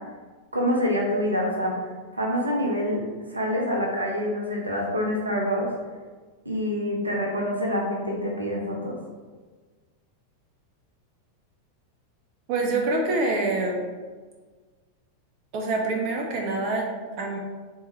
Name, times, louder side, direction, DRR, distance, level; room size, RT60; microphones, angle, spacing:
voice 1, 0.5-1.7 2.1-3.0 3.3-5.7 6.4-9.0, equal, 80° right, -1 dB, 0.7 m, -26 dB
voice 2, 12.5-13.8 15.5-17.4, right 2 dB, 40° right, 0 dB, 0.5 m, -26 dB
3.5 x 2.7 x 3.0 m, 1.4 s
figure-of-eight pair, 90°, 0 cm